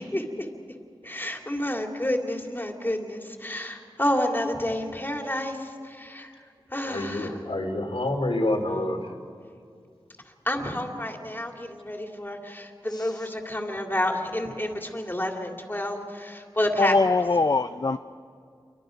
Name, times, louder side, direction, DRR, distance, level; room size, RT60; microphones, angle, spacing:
voice 1, 0.1-0.5 1.0-6.3 6.7-7.3 10.4-17.2, left 1 dB, 20° left, 2.8 m, -29 dB
voice 2, 3.5-3.8 6.8-9.1, left 1 dB, 90° left, 2.7 m, -28 dB
voice 3, 12.9-13.3 16.8-18.0, left 3 dB, 45° left, 0.5 m, -23 dB
29.0 x 23.5 x 5.2 m
wide cardioid pair, 60°, 9 cm